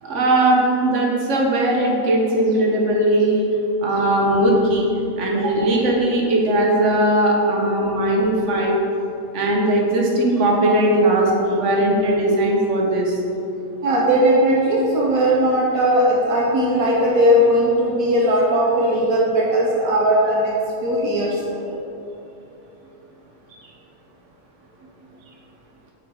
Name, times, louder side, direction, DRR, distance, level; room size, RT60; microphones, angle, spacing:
voice 1, 0.0-3.5 3.8-4.9 5.2-8.8 9.3-13.2, right 1 dB, 60° right, -1 dB, 1.5 m, -19 dB
voice 2, 13.8-21.7, equal, 80° right, -2 dB, 1.3 m, -18 dB
7.4 x 5.7 x 5.0 m, 2.8 s
omnidirectional pair, 1.5 m